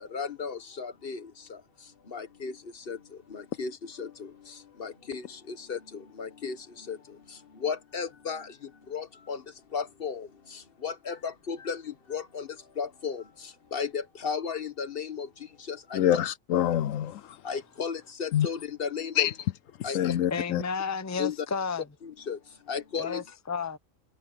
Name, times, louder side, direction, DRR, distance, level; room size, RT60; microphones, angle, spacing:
voice 1, 0.0-16.2 17.4-19.3 19.8-20.1 21.2-21.4 22.0-23.2, left 6 dB, 45° left, 1.4 m, -36 dB
voice 2, 15.9-17.4 18.3-18.5 19.2-19.3 19.9-20.6, left 11 dB, 80° left, 1.0 m, -26 dB
voice 3, 20.3-21.9 22.9-23.8, left 5 dB, 15° left, 0.8 m, -32 dB
omnidirectional pair, 1.4 m